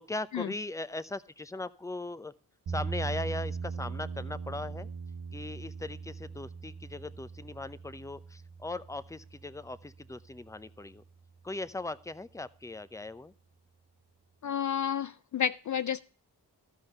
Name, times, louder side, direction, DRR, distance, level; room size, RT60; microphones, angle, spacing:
voice 1, 0.0-2.3 2.7-4.9 5.3-11.0 11.4-13.3, left 2 dB, 5° left, 0.7 m, -39 dB
sound 1, 2.7-10.7, right 5 dB, 80° right, 1.3 m, -40 dB
voice 2, 14.4-16.0, left 8 dB, 45° left, 0.5 m, -31 dB
12.5 x 5.5 x 7.9 m
supercardioid pair, 45°, 42 cm